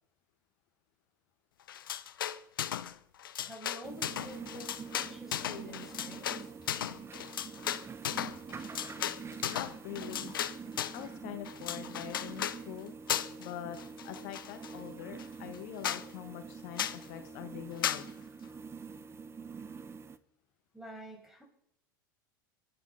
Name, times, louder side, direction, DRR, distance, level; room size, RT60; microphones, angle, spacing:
sound 1, 1.7-2.9 3.2-11.0 11.5-12.6 13.1-13.5 13.8-14.7 15.2-15.3 15.5-15.6 15.8-16.0 16.8-17.0 17.8-18.0, left 10 dB, 85° left, 0.8 m, -36 dB
voice 1, 3.4-6.5 20.7-21.4, equal, 5° right, 2 dB, 6.1 m, -48 dB
sound 2, 3.8-20.2, right 5 dB, 25° right, 1.0 m, -46 dB
voice 2, 9.5-10.4 10.9-12.9 13.4-13.8 14.0-18.1, left 11 dB, 65° left, 8 dB, 1.4 m, -44 dB
23.0 x 10.0 x 5.7 m, 0.77 s
hypercardioid pair, 95°, 11 cm